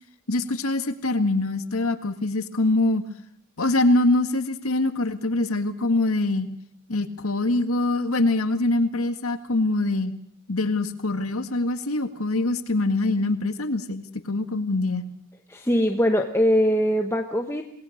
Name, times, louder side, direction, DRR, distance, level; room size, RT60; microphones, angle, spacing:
voice 1, 0.3-3.0 3.6-6.5 6.9-10.1 10.5-15.0, left 2 dB, 90° left, 9 dB, 1.8 m, -24 dB
voice 2, 15.5-17.6, equal, 10° left, 4 dB, 1.3 m, -22 dB
27.5 x 19.0 x 6.6 m, 0.66 s
head